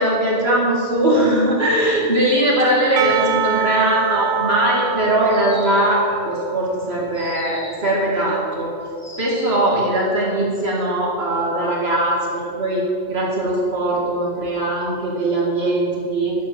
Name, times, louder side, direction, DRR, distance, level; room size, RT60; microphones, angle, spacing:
voice 1, 0.0-8.7 9.2-12.8 13.1-16.3, right 1 dB, 60° right, -4 dB, 2.4 m, -20 dB
Percussion / Church bell, 3.0-8.2, right 7 dB, 75° right, 0.9 m, -25 dB
sound 1, 5.3-6.1 7.1-7.9 9.0-9.7, left 1 dB, 25° left, 1.7 m, -39 dB
10.0 x 7.5 x 7.3 m, 2.5 s
omnidirectional pair, 1.2 m